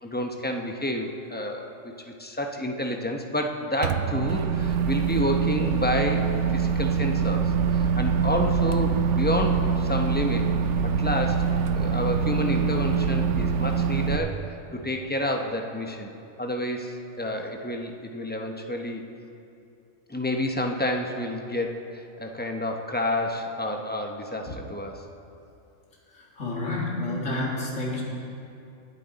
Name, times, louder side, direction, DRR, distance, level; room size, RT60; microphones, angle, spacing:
voice 1, 0.0-1.9 2.2-6.2 6.5-10.5 10.8-14.4 14.7-16.1 16.4-19.0 20.1-25.0, left 1 dB, 10° left, 2 dB, 0.6 m, -29 dB
Microwave oven, 3.8-14.2, right 6 dB, 70° right, 0.9 m, -24 dB
voice 2, 26.4-28.0, left 2 dB, 75° left, -4 dB, 2.5 m, -29 dB
20.0 x 8.3 x 4.0 m, 2.6 s
omnidirectional pair, 1.3 m